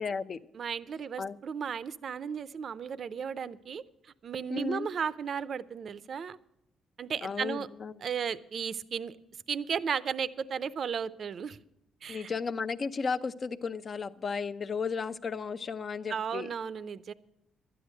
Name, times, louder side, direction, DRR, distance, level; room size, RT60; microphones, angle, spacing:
voice 1, 0.0-0.4 1.2-1.4 4.5-4.9 7.2-8.0 12.1-16.5, left 5 dB, 45° left, 12 dB, 0.6 m, -34 dB
voice 2, 0.5-3.8 4.2-6.4 7.0-7.7 8.0-9.2 9.5-11.6 12.0-12.3 16.1-17.1, right 7 dB, 55° right, 16 dB, 0.5 m, -34 dB
12.0 x 9.9 x 6.5 m, 0.86 s
cardioid pair, 90°, 0 cm